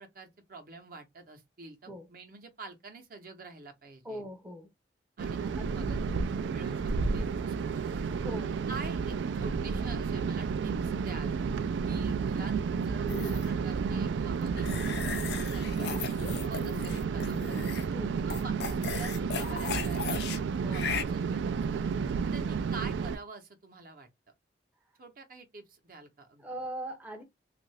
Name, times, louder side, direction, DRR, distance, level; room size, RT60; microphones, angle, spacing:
voice 1, 0.0-4.2 5.2-6.0 6.5-8.3 8.7-11.4 11.9-14.7 15.4-15.9 16.2-17.7 18.2-20.2 20.6-21.8 22.2-24.1 25.0-26.4, right 3 dB, 55° right, 0.8 m, -47 dB
voice 2, 4.0-4.7 5.6-6.3 8.1-8.5 17.9-18.2 20.6-20.8 26.4-27.2, right 1 dB, 10° right, 0.6 m, -41 dB
sound 1, 5.2-23.2, right 5 dB, 85° right, 0.3 m, -31 dB
sound 2, 13.1-13.5 14.6-17.9 18.3-20.4 20.7-21.0, left 5 dB, 65° left, 0.4 m, -36 dB
2.7 x 2.5 x 3.1 m
head